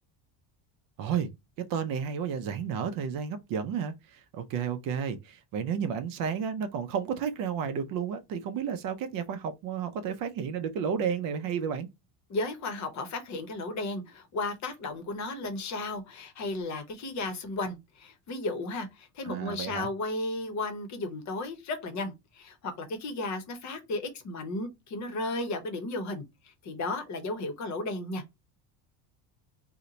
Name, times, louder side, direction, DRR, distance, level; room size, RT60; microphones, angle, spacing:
voice 1, 1.0-1.3 1.6-11.9 19.2-19.9, right 7 dB, 50° right, 0.5 m, -32 dB
voice 2, 12.3-28.2, left 2 dB, 40° left, 0.8 m, -34 dB
2.8 x 2.1 x 3.8 m
cardioid pair, 140°, 44 cm